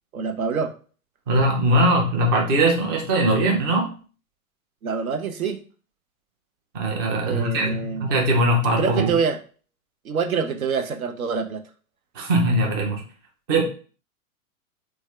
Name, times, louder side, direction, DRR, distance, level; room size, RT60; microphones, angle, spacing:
voice 1, 0.1-0.7 4.8-5.6 7.2-8.1 8.8-9.4 10.0-11.6, right 5 dB, 70° right, 8 dB, 0.7 m, -25 dB
voice 2, 1.3-3.9 6.7-9.1 12.1-13.0 13.5-13.6, right 1 dB, 15° right, 1 dB, 0.4 m, -21 dB
3.4 x 2.3 x 3.2 m, 0.38 s
figure-of-eight pair, 100°, 43 cm